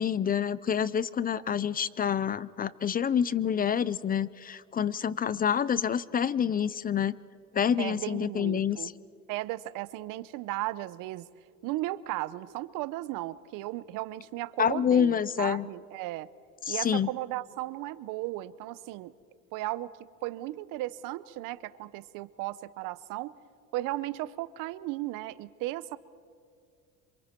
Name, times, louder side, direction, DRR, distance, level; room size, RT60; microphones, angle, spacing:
voice 1, 0.0-7.1 7.5-8.9 14.6-15.7 16.7-17.1, left 8 dB, 25° left, 19 dB, 0.5 m, -27 dB
voice 2, 7.8-8.9 9.3-11.3 11.6-16.3 16.7-19.1 19.5-19.9 20.2-23.4 23.7-26.0, right 17 dB, 75° right, 17 dB, 0.8 m, -35 dB
27.5 x 26.5 x 4.5 m, 2.3 s
cardioid pair, 120°, 33 cm